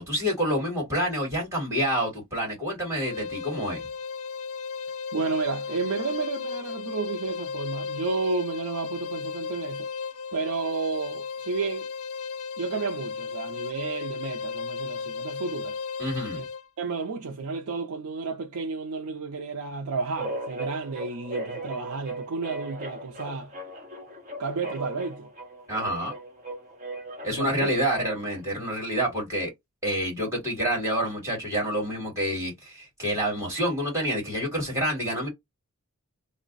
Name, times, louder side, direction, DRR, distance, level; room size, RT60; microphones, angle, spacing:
voice 1, 0.0-3.8 16.0-16.4 25.7-26.1 27.2-29.5 29.8-35.3, equal, 15° right, 2.1 m, -28 dB
sound 1, 3.0-16.7, left 5 dB, 65° left, 0.5 m, -35 dB
voice 2, 5.1-9.9 10.3-11.9 12.6-15.8 16.3-16.4 16.8-23.5 24.4-25.3 27.4-27.7, right 4 dB, 85° right, 0.5 m, -31 dB
sound 2, 20.2-28.4, right 2 dB, 35° right, 1.0 m, -37 dB
3.2 x 2.1 x 3.8 m
head